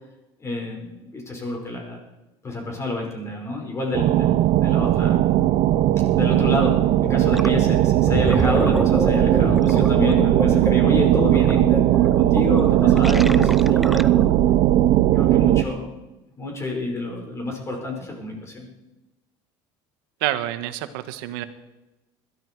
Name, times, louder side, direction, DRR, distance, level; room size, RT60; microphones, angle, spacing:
voice 1, 0.4-2.0 2.4-5.2 6.2-14.0 15.1-15.9 16.4-18.7, left 2 dB, 25° left, 1 dB, 5.2 m, -29 dB
sound 1, 3.9-15.6, right 13 dB, 55° right, 0.8 m, -18 dB
Gurgling, 7.3-7.6 7.9-14.4, equal, ahead, 0.5 m, -28 dB
voice 2, 20.2-21.4, right 14 dB, 85° right, 11 dB, 1.3 m, -27 dB
21.0 x 13.0 x 4.7 m, 1.0 s
supercardioid pair, 120°, 12 cm